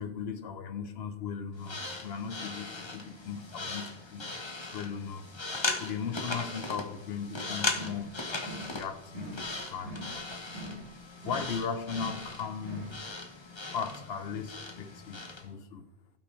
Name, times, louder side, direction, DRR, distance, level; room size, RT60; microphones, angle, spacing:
voice 1, 0.0-4.3 4.7-5.3 5.8-8.2 8.7-9.4 9.6-10.0 11.2-12.9 13.7-15.8, left 6 dB, 70° left, 10 dB, 1.1 m, -37 dB
sound 1, 1.6-15.5, left 3 dB, 25° left, 0.9 m, -38 dB
sound 2, 7.7-8.1 8.4-8.8 9.1-9.5 9.8-10.2 10.5-10.9 11.2-11.6 11.9-12.3 12.6-13.0, right 1 dB, 65° right, 2.1 m, -43 dB
16.0 x 6.0 x 3.2 m, 0.93 s
omnidirectional pair, 1.1 m